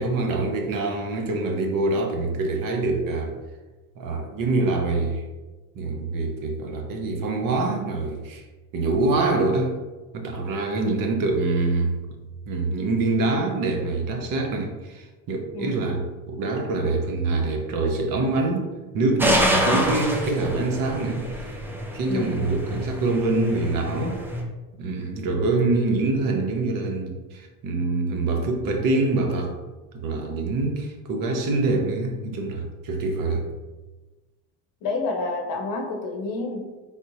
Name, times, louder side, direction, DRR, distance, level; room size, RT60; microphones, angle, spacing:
voice 1, 0.0-3.3 4.0-5.2 5.8-8.4 8.7-9.8 10.1-12.0 12.5-21.6 21.9-24.2 24.8-29.6 29.9-33.5, right 3 dB, 50° right, 2 dB, 0.7 m, -25 dB
voice 2, 15.5-15.9 22.1-22.5 34.8-36.7, left 3 dB, 55° left, 2 dB, 0.8 m, -29 dB
sound 1, 19.2-24.4, equal, 5° right, 0.4 m, -26 dB
3.5 x 2.7 x 2.6 m, 1.2 s
supercardioid pair, 90°, 42 cm